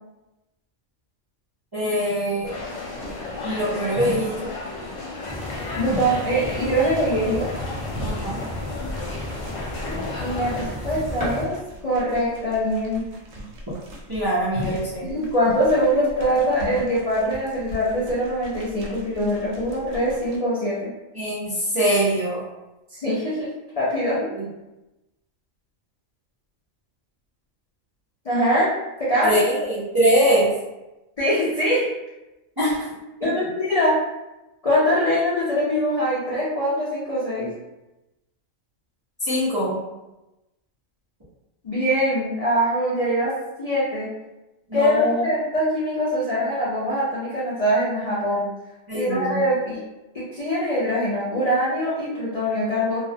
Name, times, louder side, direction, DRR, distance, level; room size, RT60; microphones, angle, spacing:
voice 1, 1.7-2.5 3.4-4.5 8.0-8.4 14.1-15.1 21.1-22.4 24.3-24.5 29.2-30.5 32.6-32.9 33.2-33.3 39.2-39.8 44.7-45.3 48.9-49.4, equal, 30° right, -10 dB, 0.4 m, -23 dB
sound 1, 2.4-10.6, left 3 dB, 75° left, 1.0 m, -34 dB
sound 2, 2.4-20.4, equal, 65° right, 0.9 m, -38 dB
sound 3, 5.2-11.4, left 1 dB, 5° left, 0.8 m, -33 dB
voice 2, 5.7-7.5 10.2-11.6 11.8-13.0 15.0-20.9 22.9-23.5 23.8-24.3 28.2-28.7 29.0-29.3 31.2-31.8 33.2-34.0 34.6-37.5 41.6-43.3 43.6-44.1 44.7-48.4 48.9-49.8 50.1-53.0, equal, 55° left, -8 dB, 0.4 m, -23 dB
2.4 x 2.1 x 2.6 m, 0.99 s
omnidirectional pair, 1.4 m